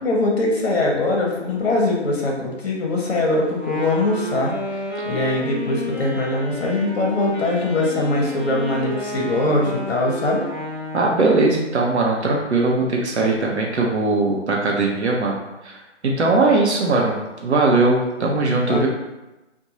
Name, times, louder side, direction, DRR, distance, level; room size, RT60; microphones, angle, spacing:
voice 1, 0.0-10.4 18.7-18.9, left 2 dB, 55° left, -1 dB, 0.7 m, -22 dB
Wind instrument woodwind instrument, 3.5-11.5, left 1 dB, 15° right, 0.8 m, -31 dB
voice 2, 10.9-15.8 16.0-18.9, right 3 dB, 65° right, -1 dB, 0.6 m, -20 dB
2.5 x 2.2 x 2.9 m, 1.0 s
figure-of-eight pair, 150°, 37 cm